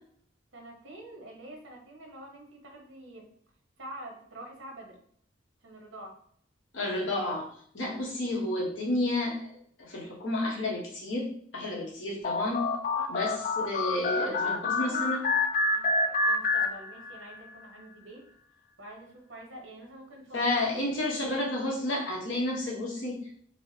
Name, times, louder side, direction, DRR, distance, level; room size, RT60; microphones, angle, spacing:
voice 1, 0.5-3.3 3.8-5.0 5.6-6.2 12.9-13.2 14.1-15.2 15.7-18.3 18.8-20.6, right 1 dB, 90° right, 0 dB, 1.0 m, -46 dB
voice 2, 6.7-7.5 7.7-9.5 9.8-12.7 13.1-15.2 20.3-23.2, left 1 dB, 75° left, -3 dB, 1.2 m, -31 dB
sound 1, 12.2-17.3, left 3 dB, 45° left, 0.3 m, -28 dB
4.6 x 2.1 x 2.8 m, 0.62 s
head